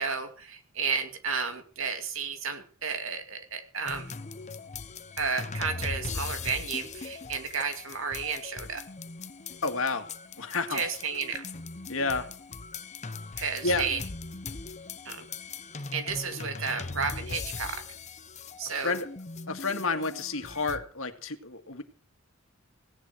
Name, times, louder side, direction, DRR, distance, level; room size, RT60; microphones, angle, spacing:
voice 1, 0.0-4.1 5.2-8.8 10.7-11.4 13.4-14.0 15.0-15.3 15.9-17.8 18.6-19.0, right 5 dB, 70° right, 7 dB, 2.6 m, -32 dB
sound 1, 3.9-20.9, left 4 dB, 35° left, 0.9 m, -40 dB
voice 2, 9.6-10.1 10.4-10.8 11.9-12.3 13.6-13.9 18.8-19.1 19.5-21.8, left 3 dB, 75° left, 7 dB, 2.1 m, -30 dB
17.0 x 10.5 x 6.2 m, 0.41 s
head